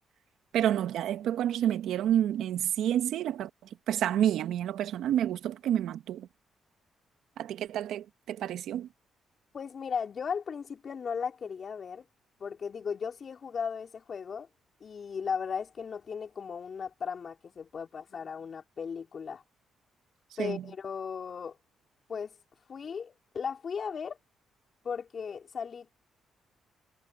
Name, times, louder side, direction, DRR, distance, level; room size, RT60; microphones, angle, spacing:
voice 1, 0.5-3.5 3.9-6.3 7.4-8.9 20.4-20.6, right 11 dB, 80° right, 1.4 m, -29 dB
voice 2, 9.5-12.0 12.4-14.5 14.8-19.4 20.4-21.6 22.1-22.3 22.7-24.2 24.8-25.9, left 6 dB, 55° left, 3.9 m, -36 dB
supercardioid pair, 60°, 0 cm